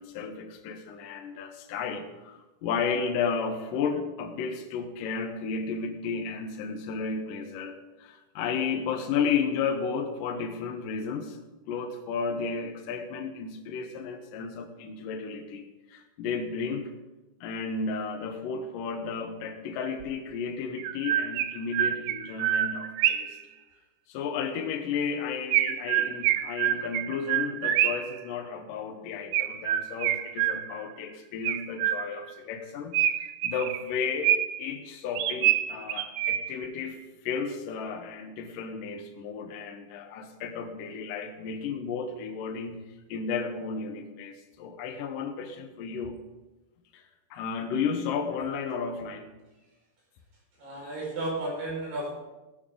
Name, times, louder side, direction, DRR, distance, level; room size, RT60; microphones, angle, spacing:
voice 1, 0.0-11.4 11.7-16.9 17.4-23.4 24.1-32.9 33.4-42.8 43.1-46.2 46.9-47.0 47.3-49.3, left 5 dB, 70° left, 4 dB, 2.2 m, -33 dB
Chirp tweet, 20.0-20.1 20.8-23.4 25.5-28.2 29.3-30.9 31.4-32.3 32.9-34.7 35.2-36.7, right 12 dB, 80° right, 2.2 m, -27 dB
voice 2, 50.6-52.1, right 1 dB, 60° right, -3 dB, 6.7 m, -33 dB
16.0 x 12.5 x 3.8 m, 1.1 s
omnidirectional pair, 4.6 m